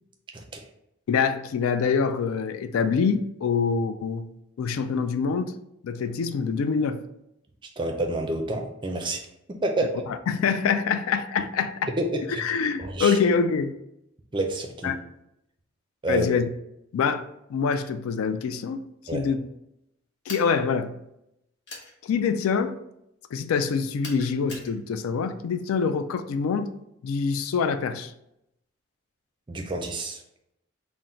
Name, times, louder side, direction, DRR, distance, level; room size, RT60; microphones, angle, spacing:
voice 1, 1.1-4.3 4.6-5.5 5.8-7.0 10.1-11.9 12.4-13.7 14.8-15.0 16.1-16.5 16.9-18.8 19.1-19.4 20.3-20.9 22.0-22.8 23.3-26.7 27.0-28.1, left 5 dB, 80° left, 0.3 m, -25 dB
voice 2, 7.8-9.2 9.5-10.0 12.0-12.4 12.8-13.1 14.3-14.9 16.0-16.3 19.1-19.2 29.5-30.2, right 1 dB, 20° right, 0.4 m, -28 dB
sound 1, 20.3-20.6 21.7-21.9 24.0-24.7, left 2 dB, 55° left, 0.9 m, -40 dB
3.8 x 2.1 x 4.2 m
head